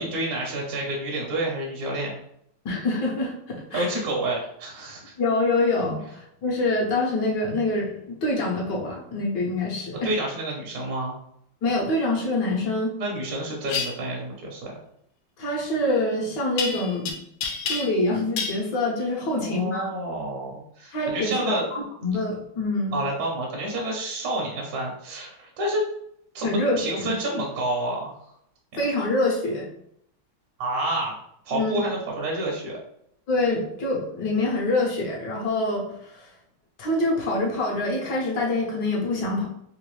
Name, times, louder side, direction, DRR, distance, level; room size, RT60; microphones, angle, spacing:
voice 1, 0.0-2.1 3.7-5.1 10.0-11.1 13.0-14.7 19.3-21.6 22.9-25.8 26.3-28.2 30.6-31.2 31.4-32.8, right 1 dB, 60° right, -2 dB, 1.0 m, -29 dB
voice 2, 2.6-3.9 5.2-10.1 11.6-12.9 15.4-17.2 17.6-19.9 20.9-23.0 26.4-27.1 28.8-29.7 31.5-31.8 33.3-36.3 36.8-39.5, left 2 dB, 60° left, -2 dB, 1.4 m, -25 dB
sound 1, 13.7-13.9 16.6-17.1 17.4-18.1 18.4-18.6, left 5 dB, 85° left, 1.5 m, -28 dB
3.7 x 2.5 x 3.0 m, 0.73 s
omnidirectional pair, 2.3 m